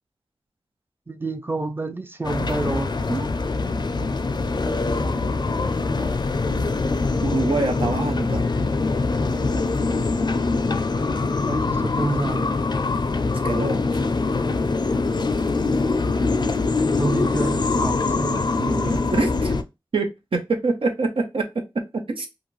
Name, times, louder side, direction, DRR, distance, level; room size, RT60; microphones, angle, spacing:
voice 1, 1.1-3.3 11.4-12.5 17.0-18.9, right 2 dB, 25° right, 0.5 m, -29 dB
sound 1, 2.2-19.6, left 3 dB, 50° left, 0.4 m, -23 dB
voice 2, 7.2-8.4 13.4-14.0 18.7-19.5 19.9-22.3, right 3 dB, 75° right, 0.5 m, -25 dB
2.5 x 2.4 x 3.0 m
wide cardioid pair, 55°, 9 cm